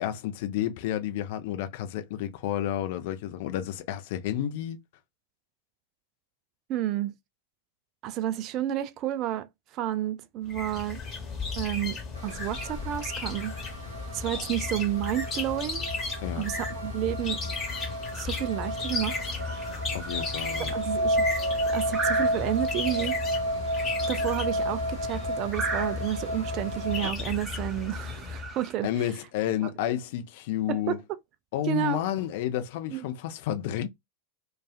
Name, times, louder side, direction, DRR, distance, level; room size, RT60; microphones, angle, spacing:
voice 1, 0.0-4.8 14.3-14.5 16.2-16.5 19.9-20.7 28.8-31.0 31.5-33.9, left 11 dB, 50° left, 0.5 m, -31 dB
voice 2, 6.7-7.1 8.0-9.5 9.7-11.0 11.6-13.5 14.1-15.9 16.4-17.4 18.1-19.2 20.6-21.3 21.7-23.2 24.1-28.9 29.6-29.7 30.7-31.2 31.7-32.0 32.9-33.0, right 13 dB, 35° right, 0.3 m, -31 dB
sound 1, 10.5-28.5, left 4 dB, 25° left, 1.1 m, -35 dB
sound 2, 12.1-27.1, right 1 dB, 80° right, 0.9 m, -32 dB
sound 3, 18.9-28.7, right 4 dB, 15° right, 0.7 m, -40 dB
2.4 x 2.3 x 2.3 m
figure-of-eight pair, 90°, 0 cm